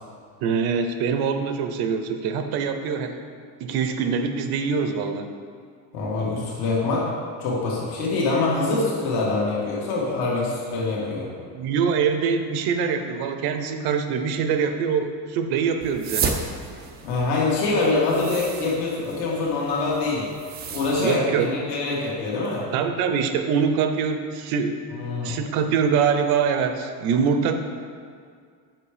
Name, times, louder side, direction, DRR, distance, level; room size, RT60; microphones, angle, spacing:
voice 1, 0.4-3.2 3.6-5.3 11.5-16.3 21.0-21.5 22.7-24.8 25.2-27.6, right 6 dB, 60° right, 7 dB, 0.7 m, -24 dB
voice 2, 5.9-7.1 7.4-11.3 17.0-20.3 20.7-22.6 24.9-25.4, left 3 dB, 60° left, -5 dB, 1.9 m, -24 dB
sound 1, 15.8-21.2, right 5 dB, 25° right, 0.4 m, -33 dB
7.4 x 5.9 x 5.0 m, 2.1 s
cardioid pair, 175°, 43 cm